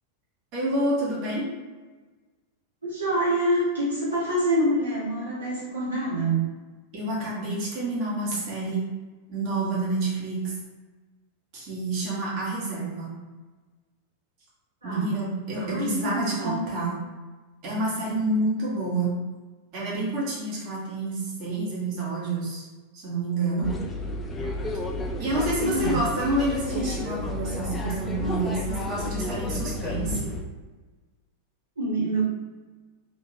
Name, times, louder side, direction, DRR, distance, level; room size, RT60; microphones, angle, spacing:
voice 1, 0.5-1.4 6.9-8.8 9.3-10.5 11.5-13.1 14.8-17.0 17.6-19.1 19.7-22.7 22.9-23.7 25.2-30.3, right 2 dB, 40° right, -6 dB, 1.2 m, -28 dB
voice 2, 2.8-6.5 14.8-15.1 15.6-16.5 25.6-26.1 31.8-32.2, right 1 dB, 80° right, -8 dB, 0.9 m, -26 dB
sound 1, 23.6-30.4, left 1 dB, 15° left, 0.3 m, -31 dB
3.2 x 2.9 x 2.7 m, 1.3 s
figure-of-eight pair, 90°, 0 cm